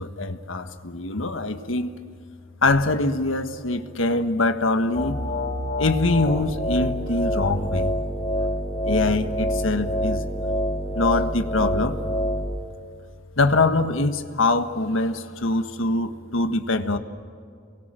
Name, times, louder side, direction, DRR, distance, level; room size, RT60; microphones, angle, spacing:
voice 1, 0.0-1.9 2.6-5.2 5.8-7.9 8.8-10.2 10.9-12.0 13.4-17.0, left 2 dB, 75° left, 8 dB, 1.5 m, -23 dB
sound 1, 4.9-12.5, equal, 45° left, 4.6 m, -26 dB
29.0 x 22.5 x 7.6 m, 2.4 s
head